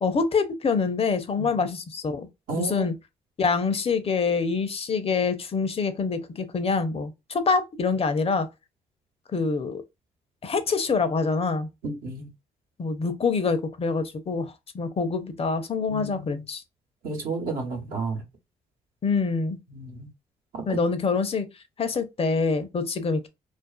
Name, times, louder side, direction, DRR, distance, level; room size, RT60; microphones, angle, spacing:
voice 1, 0.0-2.3 2.5-2.9 3.4-8.5 9.3-9.8 10.4-11.7 12.8-16.6 19.0-19.6 20.7-21.5 21.8-23.3, left 4 dB, 40° left, 0.6 m, -25 dB
voice 2, 2.5-2.9 11.8-12.3 15.9-16.4 17.0-18.2 19.7-20.1 20.5-20.8, right 3 dB, 75° right, 0.9 m, -32 dB
2.4 x 2.4 x 2.2 m
hypercardioid pair, 50°, 15 cm